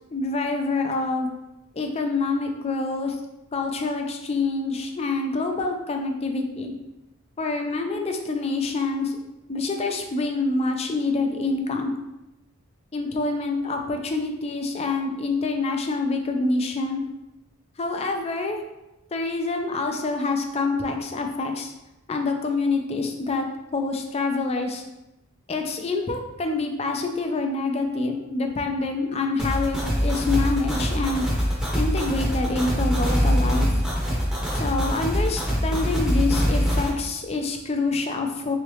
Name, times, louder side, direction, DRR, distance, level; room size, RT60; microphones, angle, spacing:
voice 1, 0.1-1.3 1.7-3.2 3.5-6.7 7.4-9.2 9.5-11.9 12.9-17.0 17.8-18.6 19.1-21.7 22.1-23.5 23.7-24.8 25.5-31.5 31.7-33.8 34.5-38.6, left 3 dB, 30° left, 4 dB, 0.4 m, -26 dB
sound 1, 29.4-36.9, equal, 5° right, 0.8 m, -23 dB
3.6 x 3.1 x 3.1 m, 0.95 s
head